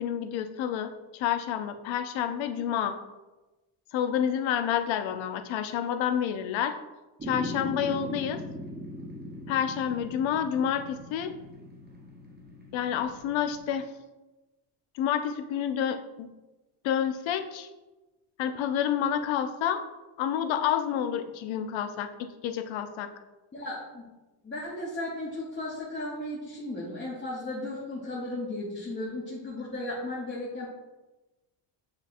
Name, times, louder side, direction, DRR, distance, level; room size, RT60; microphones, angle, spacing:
voice 1, 0.0-2.9 3.9-6.7 7.2-8.4 9.5-11.3 12.7-13.9 14.9-16.3 16.8-17.7 18.4-19.8 20.2-22.1 22.4-23.1, left 9 dB, 70° left, 8 dB, 0.6 m, -29 dB
sound 1, 7.2-13.7, left 1 dB, 20° right, 0.7 m, -40 dB
voice 2, 23.5-24.0 24.4-30.7, left 1 dB, 25° left, -6 dB, 0.8 m, -35 dB
6.8 x 2.8 x 2.5 m, 1.1 s
cardioid pair, 105°, 48 cm